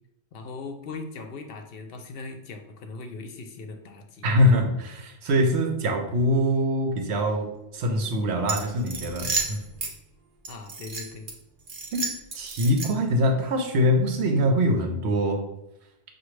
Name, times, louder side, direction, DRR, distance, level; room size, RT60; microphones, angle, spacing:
voice 1, 0.3-4.5 10.5-11.3, left 3 dB, 65° left, 6 dB, 0.7 m, -39 dB
voice 2, 4.2-9.6 11.9-12.1 12.3-15.4, equal, 80° right, 4 dB, 1.0 m, -23 dB
sound 1, 8.4-9.9 10.4-11.3 11.7-13.1, right 3 dB, 55° right, 0.9 m, -32 dB
5.9 x 2.4 x 3.1 m, 0.84 s
omnidirectional pair, 1.1 m